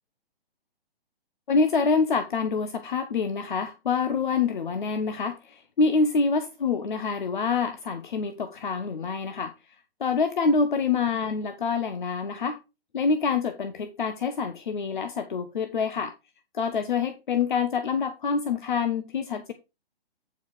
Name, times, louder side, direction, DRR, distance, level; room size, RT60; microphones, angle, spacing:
voice 1, 1.5-9.5 10.0-12.6 12.9-16.1 16.5-19.5, left 5 dB, 55° left, 1.1 m, -26 dB
9.4 x 4.8 x 4.7 m
figure-of-eight pair, 135°, 31 cm